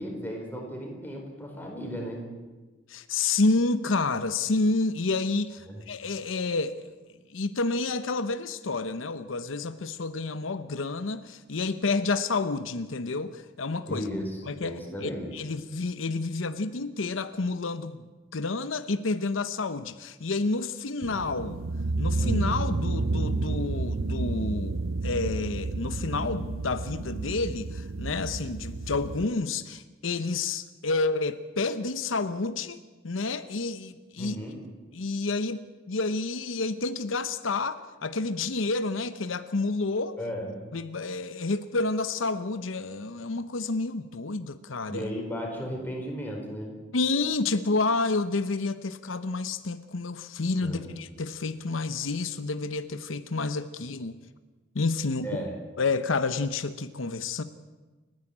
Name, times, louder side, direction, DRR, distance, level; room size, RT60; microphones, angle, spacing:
voice 1, 0.0-2.3 5.7-5.8 13.9-15.3 34.2-34.6 40.2-40.6 44.9-46.8 50.6-50.9 55.2-55.6, equal, 10° left, 4.9 m, -35 dB
voice 2, 2.9-6.9 7.3-14.1 14.5-14.8 15.0-18.1 18.3-21.6 22.0-34.4 34.9-40.2 40.7-45.1 46.9-54.2 54.7-55.4 55.8-57.4, left 3 dB, 90° left, 0.9 m, -29 dB
sound 1, 21.0-29.2, right 3 dB, 85° right, 0.7 m, -30 dB
29.5 x 10.5 x 8.7 m
head